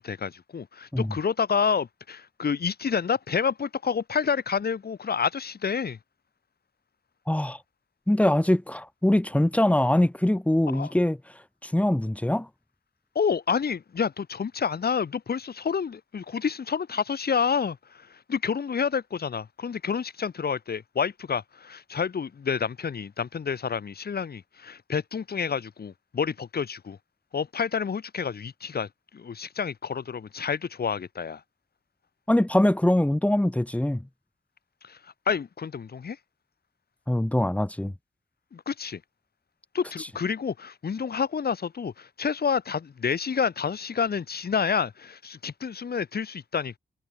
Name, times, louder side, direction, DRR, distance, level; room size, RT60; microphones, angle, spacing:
voice 1, 0.0-6.0 10.7-10.9 13.1-27.0 27.3-31.4 34.8-36.2 38.5-39.0 39.7-46.8, left 6 dB, 60° left, 6.7 m, -29 dB
voice 2, 7.3-7.6 8.1-11.2 11.6-12.5 32.3-34.0 37.1-37.9, left 1 dB, 5° left, 4.5 m, -23 dB
wide cardioid pair, 170°, 18 cm